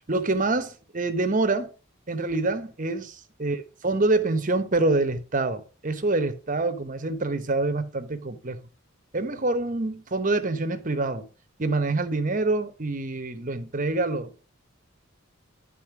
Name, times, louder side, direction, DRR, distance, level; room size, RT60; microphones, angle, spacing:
voice 1, 0.1-1.7 2.1-3.6 3.8-8.6 9.1-11.3 11.6-14.3, right 2 dB, 40° right, 0.9 m, -26 dB
11.0 x 4.2 x 5.9 m
head